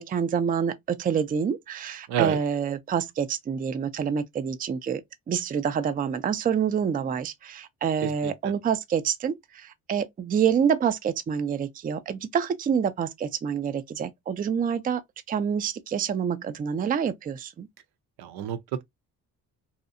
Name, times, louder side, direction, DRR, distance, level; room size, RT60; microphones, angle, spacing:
voice 1, 0.0-5.0 5.3-15.0 15.3-17.7, right 7 dB, 25° right, 0.4 m, -27 dB
voice 2, 2.1-2.4 8.0-8.3 18.2-18.8, right 10 dB, 75° right, 0.5 m, -29 dB
2.6 x 2.1 x 2.4 m
supercardioid pair, 70°, 39 cm